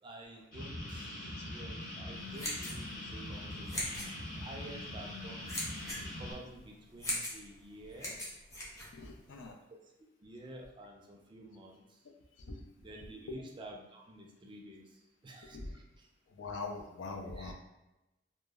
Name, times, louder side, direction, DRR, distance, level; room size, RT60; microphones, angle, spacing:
voice 1, 0.0-3.9 4.3-5.5 5.8-8.2 9.7-9.8 10.2-12.0 12.8-16.1 17.4-17.5, right 1 dB, 25° right, 1 dB, 0.3 m, -50 dB
sound 1, 0.5-6.3, left 1 dB, 55° left, 0.8 m, -42 dB
sound 2, 2.1-9.5, left 1 dB, 20° left, 0.6 m, -41 dB
voice 2, 8.9-9.6 12.4-12.6 13.3-13.4 15.5-15.7 16.3-17.5, left 3 dB, 75° left, 3 dB, 0.4 m, -42 dB
2.1 x 2.0 x 3.4 m, 0.97 s
head